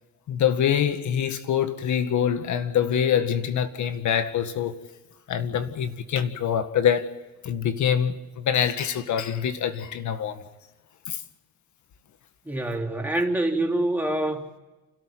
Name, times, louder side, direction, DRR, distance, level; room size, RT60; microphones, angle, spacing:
voice 1, 0.3-4.8 5.3-7.1 7.4-10.4 11.1-11.2, left 8 dB, 70° left, 1.9 m, -25 dB
voice 2, 12.5-14.4, right 1 dB, 5° right, 3.8 m, -25 dB
28.5 x 13.5 x 9.4 m
cardioid pair, 90°, 30 cm